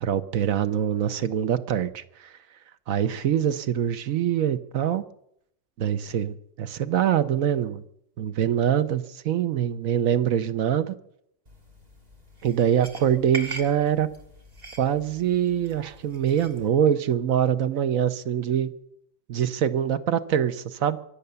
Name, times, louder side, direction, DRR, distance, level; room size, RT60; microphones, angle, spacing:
voice 1, 0.0-2.3 2.9-5.0 5.8-7.8 8.2-10.9 12.4-14.1 14.8-18.7 19.3-21.0, right 9 dB, 75° right, 13 dB, 1.3 m, -24 dB
sound 1, 11.5-16.7, right 2 dB, 30° right, 2.3 m, -42 dB
24.0 x 8.3 x 6.8 m, 0.74 s
omnidirectional pair, 1.4 m